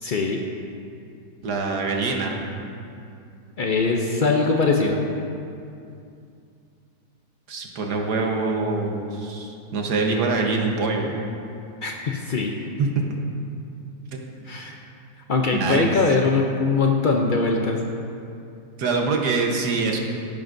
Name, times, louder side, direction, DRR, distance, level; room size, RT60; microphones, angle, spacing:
voice 1, 0.0-0.4 3.6-5.0 11.8-12.5 14.4-14.8 15.3-17.8, left 4 dB, 90° left, 1 dB, 0.4 m, -21 dB
voice 2, 1.4-2.4 7.5-11.2 12.8-12.9 14.1-14.3 15.5-15.9 18.8-20.0, right 3 dB, 70° right, 1 dB, 1.7 m, -24 dB
14.0 x 11.0 x 2.6 m, 2.5 s
omnidirectional pair, 1.8 m